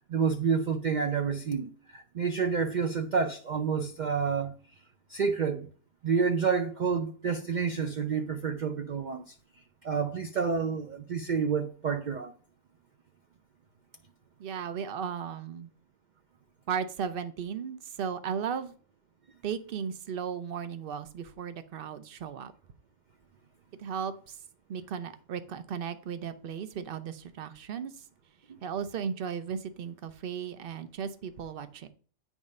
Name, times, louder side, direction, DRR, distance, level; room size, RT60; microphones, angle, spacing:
voice 1, 0.0-4.5 5.1-5.7 6.0-9.3 9.8-12.3 28.5-28.6, right 6 dB, 75° right, 0.4 m, -29 dB
voice 2, 14.4-15.7 16.7-18.7 19.4-22.5 23.8-24.4 24.7-28.0 28.6-31.9, right 7 dB, 50° right, 0.7 m, -36 dB
9.1 x 3.6 x 5.3 m
omnidirectional pair, 1.4 m